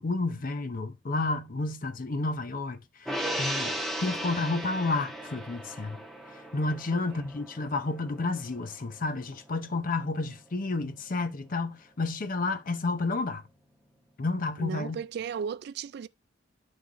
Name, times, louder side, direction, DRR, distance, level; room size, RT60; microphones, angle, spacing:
voice 1, 0.0-6.0 6.5-13.4 14.2-15.0, left 3 dB, 50° left, 0.6 m, -31 dB
Gong, 3.1-9.7 10.0-10.2, equal, ahead, 0.7 m, -37 dB
voice 2, 6.9-7.2 14.6-16.1, right 6 dB, 60° right, 0.3 m, -36 dB
9.5 x 3.3 x 3.8 m
head